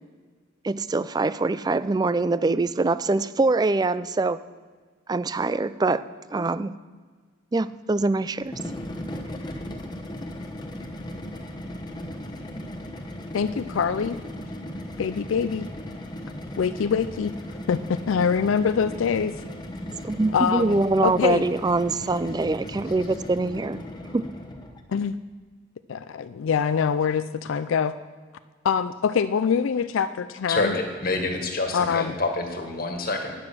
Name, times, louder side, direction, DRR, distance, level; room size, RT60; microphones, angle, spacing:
voice 1, 0.6-4.4 5.1-6.0 6.3-6.7 7.5-8.6 20.0-23.9 24.1-24.3, right 3 dB, 20° right, 15 dB, 0.3 m, -24 dB
sound 1, 8.4-24.8, left 1 dB, 20° left, 1.0 m, -37 dB
voice 2, 13.3-14.2 15.0-15.7 16.6-17.3 17.7-19.4 20.3-21.5 24.9-25.2 25.9-27.9 28.6-30.7 31.7-32.1, left 6 dB, 85° left, 12 dB, 0.4 m, -24 dB
voice 3, 30.5-33.3, left 2 dB, 50° left, 4 dB, 1.7 m, -27 dB
12.5 x 9.9 x 6.1 m, 1.5 s
head